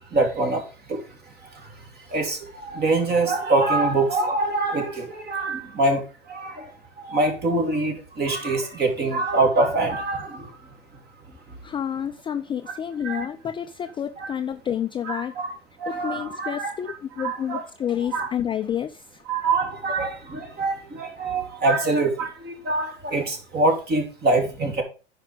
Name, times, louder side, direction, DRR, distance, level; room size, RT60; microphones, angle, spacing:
voice 1, 0.1-10.6 13.0-13.3 14.2-14.3 15.0-15.5 15.8-16.7 17.2-17.6 18.1-18.3 19.3-24.8, right 2 dB, 30° right, 3.2 m, -25 dB
voice 2, 11.6-15.3 15.9-19.2, left 9 dB, 15° left, 0.4 m, -29 dB
10.0 x 5.2 x 5.2 m
hypercardioid pair, 105°, 34 cm